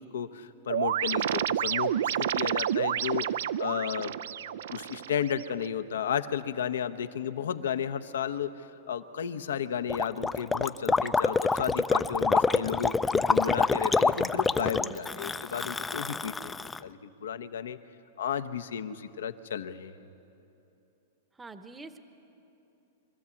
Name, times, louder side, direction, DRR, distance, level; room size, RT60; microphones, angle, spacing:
voice 1, 0.0-3.3 3.6-4.1 4.7-16.5 16.8-17.8 18.2-19.9, left 8 dB, 85° left, 10 dB, 0.8 m, -33 dB
sound 1, 0.7-5.7, right 10 dB, 75° right, 0.4 m, -30 dB
Gurgling, 9.9-16.8, left 4 dB, 10° left, 0.4 m, -26 dB
voice 2, 14.7-15.2 21.4-22.0, right 3 dB, 10° right, 10 dB, 0.8 m, -46 dB
23.5 x 13.5 x 8.3 m, 2.9 s
hypercardioid pair, 135°, 0 cm